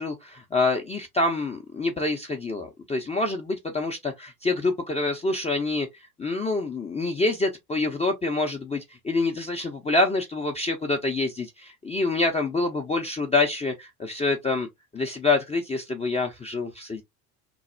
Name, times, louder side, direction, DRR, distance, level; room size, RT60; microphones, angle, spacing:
voice 1, 0.0-14.7 14.9-17.0, left 3 dB, 15° left, 0.4 m, -26 dB
3.1 x 2.0 x 2.5 m
hypercardioid pair, 70°, 46 cm